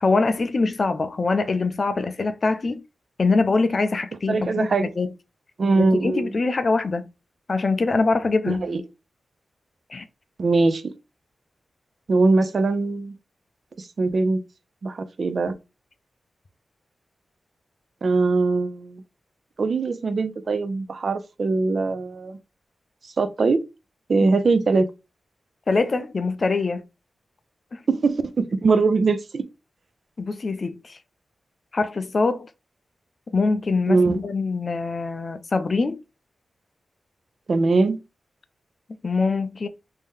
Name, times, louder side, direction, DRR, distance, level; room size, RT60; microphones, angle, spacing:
voice 1, 0.0-2.8 3.2-4.7 5.0-5.1 5.7-7.1 7.5-8.6 9.9-10.1 24.2-24.3 25.7-26.8 27.7-27.8 30.2-31.0 31.7-32.5 33.3-36.0 39.0-39.7, left 3 dB, 40° left, 0.4 m, -23 dB
voice 2, 4.3-4.9 5.6-6.4 8.5-8.8 10.4-10.9 12.1-13.1 13.8-14.4 14.8-15.5 18.0-19.0 19.6-22.4 23.2-23.6 24.1-24.9 27.9-29.4 33.9-34.2 37.5-38.0, right 3 dB, 50° right, 0.4 m, -21 dB
3.3 x 2.7 x 3.5 m
wide cardioid pair, 170°, 0 cm